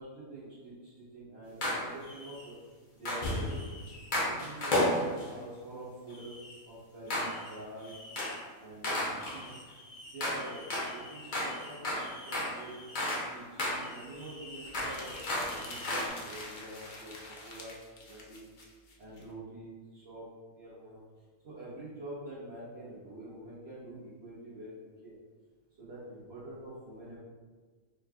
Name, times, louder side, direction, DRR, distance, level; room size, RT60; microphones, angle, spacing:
voice 1, 0.0-2.6 2.9-3.7 4.2-6.3 6.6-8.0 8.6-9.0 10.0-12.9 13.3-18.5 19.0-21.0 21.4-25.1 25.8-27.2, right 1 dB, 50° right, -10 dB, 1.3 m, -46 dB
sound 1, 1.6-2.5 3.1-5.4 6.1-6.6 7.1-7.6 7.8-8.4 8.8-13.3 13.6-16.1, left 1 dB, 40° left, 0.9 m, -34 dB
sound 2, 14.5-19.2, left 2 dB, 65° left, 0.4 m, -46 dB
4.6 x 3.0 x 2.4 m, 1.4 s
omnidirectional pair, 1.5 m